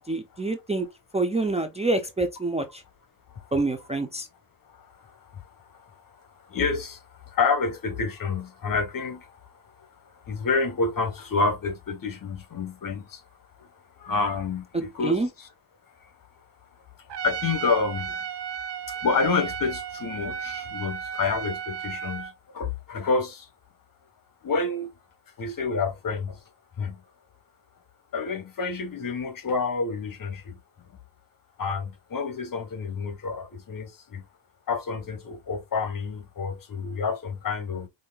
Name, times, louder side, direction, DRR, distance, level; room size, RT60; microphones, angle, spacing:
voice 1, 0.1-0.9 1.1-2.8 3.5-4.3 15.0-15.3, right 2 dB, 15° right, 0.5 m, -26 dB
voice 2, 4.7-9.9 10.1-13.2 13.6-13.7 14.0-15.5 16.0-16.1 17.0-18.2 18.9-23.5 24.4-24.9 25.4-26.4 26.8-27.0 28.1-31.0 31.6-34.2 34.7-37.9, left 4 dB, 45° left, 1.1 m, -29 dB
Trumpet, 17.1-22.3, right 8 dB, 65° right, 0.8 m, -34 dB
5.6 x 2.7 x 2.2 m
cardioid pair, 105°, 45 cm